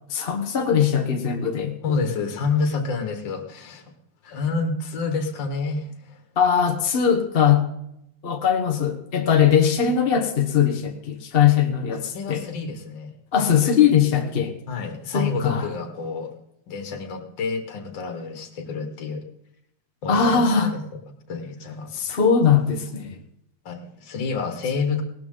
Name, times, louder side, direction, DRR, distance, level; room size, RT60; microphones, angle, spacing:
voice 1, 0.1-1.8 6.4-7.6 8.2-12.4 13.3-14.5 15.1-15.7 20.1-20.7 21.9-23.2, left 7 dB, 35° left, 4 dB, 1.0 m, -20 dB
voice 2, 1.8-3.8 4.2-6.2 12.1-13.2 14.7-16.3 16.7-19.3 20.0-20.8 21.3-21.9 23.7-25.0, left 4 dB, 65° left, 5 dB, 2.1 m, -28 dB
18.5 x 13.0 x 3.8 m, 0.80 s
omnidirectional pair, 2.2 m